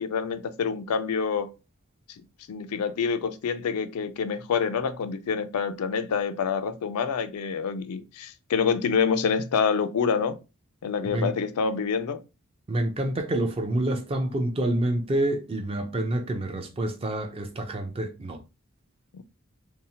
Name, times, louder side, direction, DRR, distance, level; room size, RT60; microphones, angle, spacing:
voice 1, 0.0-1.5 2.5-10.4 10.8-12.2 19.1-19.2, left 6 dB, 85° left, 0.4 m, -27 dB
voice 2, 12.7-18.4, right 1 dB, 25° right, 0.4 m, -27 dB
2.7 x 2.0 x 2.7 m
head